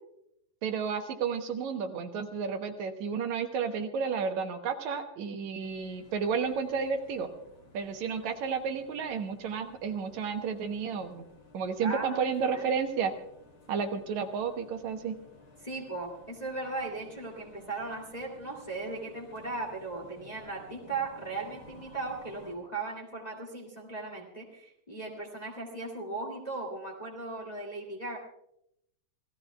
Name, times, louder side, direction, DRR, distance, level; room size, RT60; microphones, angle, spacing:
voice 1, 0.6-7.3 7.7-11.2 11.5-13.1 13.7-15.2, right 6 dB, 75° right, 5 dB, 2.3 m, -32 dB
sound 1, 5.6-22.6, left 2 dB, 45° left, 3.4 m, -56 dB
voice 2, 11.8-12.6 15.6-28.2, right 3 dB, 15° left, 0 dB, 1.8 m, -37 dB
28.0 x 16.0 x 2.3 m, 0.79 s
omnidirectional pair, 3.4 m